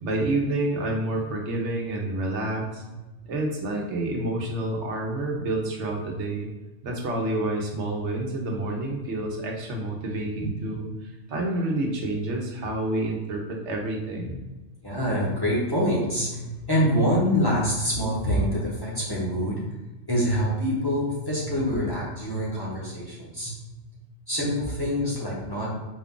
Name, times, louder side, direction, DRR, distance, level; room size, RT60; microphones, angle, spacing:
voice 1, 0.0-2.8 3.3-6.5 6.8-10.9 11.3-14.4, right 2 dB, 75° right, 0 dB, 1.1 m, -28 dB
voice 2, 14.8-19.8 20.1-23.5 24.3-25.7, equal, 20° left, -6 dB, 0.9 m, -25 dB
4.5 x 2.3 x 3.7 m, 1.1 s
omnidirectional pair, 1.2 m